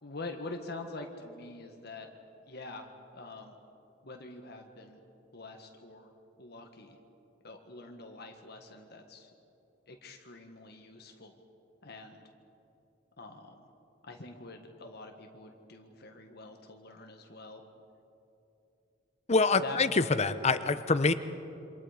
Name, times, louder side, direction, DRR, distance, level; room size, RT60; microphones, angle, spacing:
voice 1, 0.0-2.1 2.5-3.6 4.0-5.0 5.3-6.1 6.4-7.0 7.4-9.3 9.9-11.4 11.8-12.3 13.2-13.7 14.0-17.6 19.5-19.8, left 2 dB, 55° left, 3 dB, 1.7 m, -45 dB
voice 2, 19.3-21.1, left 3 dB, 35° left, 12 dB, 0.9 m, -25 dB
28.0 x 26.0 x 5.1 m, 2.8 s
head